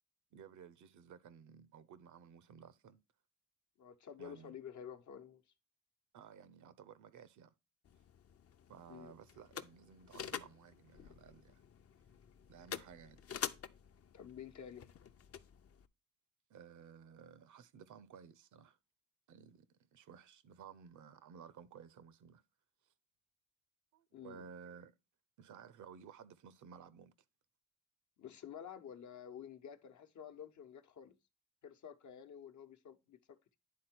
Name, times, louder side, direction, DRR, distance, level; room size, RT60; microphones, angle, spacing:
voice 1, 0.3-3.0 4.2-4.6 6.1-7.5 8.7-11.5 12.5-13.2 16.5-18.8 19.3-22.4 23.9-24.9 25.4-27.1, right 7 dB, 75° right, 0.7 m, -56 dB
voice 2, 3.8-5.4 8.9-9.1 14.1-14.9 24.1-24.5 28.2-31.2 31.6-33.6, left 8 dB, 70° left, 0.9 m, -51 dB
sound 1, 7.8-15.9, left 8 dB, 50° left, 0.6 m, -48 dB
9.6 x 3.7 x 4.4 m
cardioid pair, 65°, 30 cm